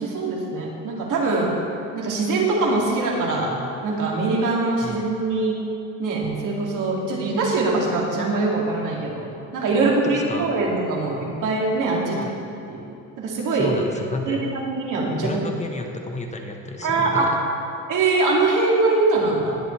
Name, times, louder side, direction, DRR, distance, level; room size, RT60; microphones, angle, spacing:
voice 1, 0.0-1.5 1.9-3.5 3.8-5.5 6.0-9.3 9.5-12.3 12.7-12.8 13.2-13.8 14.2-15.3 16.8-17.3 17.9-19.6, right 3 dB, 60° right, -3 dB, 2.7 m, -22 dB
sound 1, 6.2-9.8, right 9 dB, 40° right, 0.9 m, -40 dB
voice 2, 9.8-10.5 12.1-12.3 13.6-14.4 15.2-17.4, left 2 dB, 20° left, 3 dB, 1.3 m, -32 dB
19.5 x 7.7 x 3.4 m, 2.7 s
cardioid pair, 100°, 35 cm